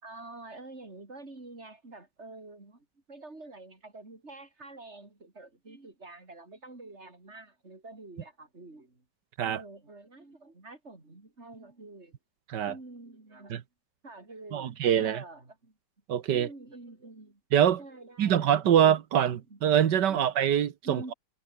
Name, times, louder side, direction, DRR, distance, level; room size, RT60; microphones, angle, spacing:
voice 1, 0.0-9.0 9.4-12.1 12.7-13.6 14.0-15.7 16.3-17.4 17.8-18.8 19.3-19.6 20.1-20.3 20.8-21.1, right 2 dB, 40° right, 4.8 m, -47 dB
voice 2, 14.5-15.2 16.1-16.5 17.5-17.8 18.2-21.1, right 9 dB, 80° right, 1.8 m, -24 dB
omnidirectional pair, 1.8 m